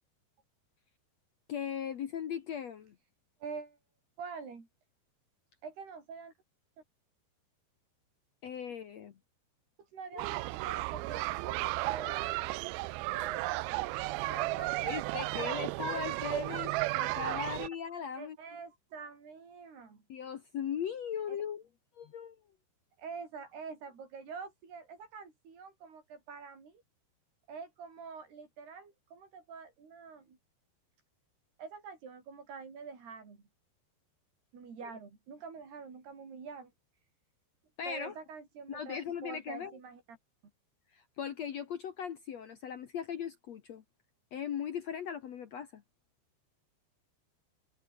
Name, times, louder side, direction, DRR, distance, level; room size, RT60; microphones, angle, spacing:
voice 1, 1.5-2.9 8.4-9.2 10.1-10.2 14.8-18.4 20.1-21.7 21.9-22.4 34.8-34.9 37.8-38.1 38.7-39.7 40.9-43.8 44.3-45.8, left 8 dB, 75° left, 1.6 m, -38 dB
voice 2, 3.4-3.8 4.2-4.7 5.6-6.3 9.8-12.2 13.1-13.9 14.3-15.0 17.5-17.6 18.2-20.0 21.3-21.4 23.0-26.8 27.5-30.4 31.6-33.4 34.5-36.7 37.9-40.0, right 5 dB, 65° right, 7.7 m, -46 dB
sound 1, 10.2-17.7, right 20 dB, 90° right, 2.1 m, -34 dB
omnidirectional pair, 5.1 m